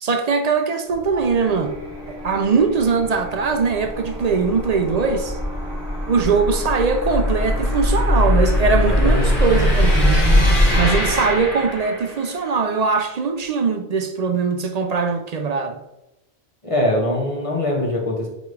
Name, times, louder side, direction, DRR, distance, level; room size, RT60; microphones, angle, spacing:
voice 1, 0.0-1.8 2.1-5.4 6.1-10.2 10.8-15.8, right 5 dB, 50° right, 0.5 m, -21 dB
sound 1, 0.9-12.3, equal, 50° left, 2.0 m, -21 dB
sound 2, 1.4-13.4, left 2 dB, 15° right, 2.2 m, -39 dB
voice 2, 8.7-9.3 16.6-18.3, left 1 dB, 30° left, 1.1 m, -22 dB
8.1 x 3.5 x 3.3 m
omnidirectional pair, 1.1 m